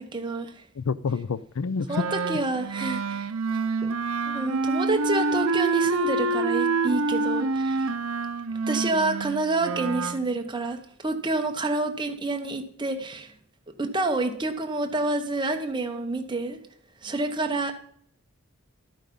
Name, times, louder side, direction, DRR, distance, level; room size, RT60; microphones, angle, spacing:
voice 1, 0.0-0.6 1.9-3.6 4.2-7.9 8.7-13.3 13.8-16.6 17.0-17.7, right 2 dB, 20° right, 5 dB, 1.0 m, -28 dB
voice 2, 0.8-2.1, left 5 dB, 70° left, 18 dB, 0.4 m, -28 dB
Wind instrument woodwind instrument, 1.9-10.2, right 3 dB, 70° right, 0.6 m, -27 dB
12.0 x 8.9 x 5.4 m, 0.65 s
head